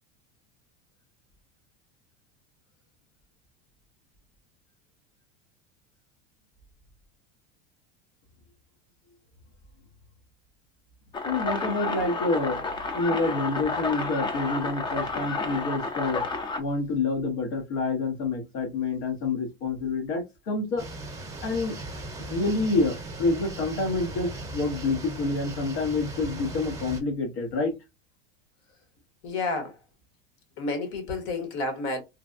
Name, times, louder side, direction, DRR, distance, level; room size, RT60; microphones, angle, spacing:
sound 1, 11.1-16.6, left 3 dB, 15° left, 0.4 m, -31 dB
voice 1, 11.2-12.6 12.9-16.3 16.6-20.8 21.4-21.8 22.2-27.7, left 3 dB, 75° left, 1.4 m, -28 dB
sound 2, 20.8-27.0, right 1 dB, 10° right, 0.8 m, -38 dB
voice 2, 29.2-29.8 30.6-32.0, left 3 dB, 55° left, 1.4 m, -30 dB
3.3 x 2.2 x 2.6 m
supercardioid pair, 135°, 31 cm